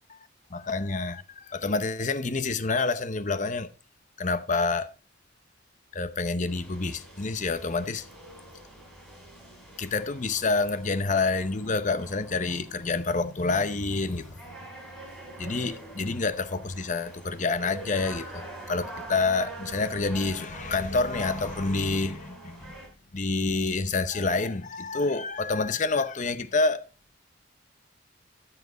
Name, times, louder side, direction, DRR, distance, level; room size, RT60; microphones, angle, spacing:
voice 1, 0.5-3.7 4.2-4.9 5.9-8.0 9.8-14.4 15.4-22.7 23.1-26.8, left 3 dB, 40° left, 0.8 m, -28 dB
sound 1, 6.5-22.9, right 1 dB, ahead, 4.8 m, -44 dB
13.5 x 5.9 x 3.9 m
head